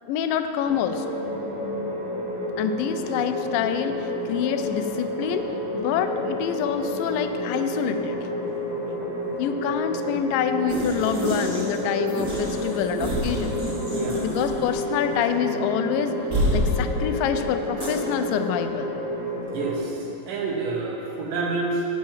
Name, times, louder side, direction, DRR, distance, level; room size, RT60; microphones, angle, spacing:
voice 1, 0.1-1.1 2.6-5.5 5.7-8.2 9.4-13.5 14.2-16.2 16.5-18.9, left 8 dB, 85° left, 8 dB, 2.2 m, -26 dB
sound 1, 0.6-19.8, left 1 dB, 5° right, 1.1 m, -30 dB
sound 2, 10.7-11.8 12.1-14.9 15.1-15.2 16.3-16.7 17.8-17.9, right 1 dB, 30° right, 2.4 m, -28 dB
voice 2, 13.9-14.2 19.5-21.9, right 3 dB, 75° right, -2 dB, 2.8 m, -28 dB
7.6 x 6.2 x 7.2 m, 3.0 s
omnidirectional pair, 3.9 m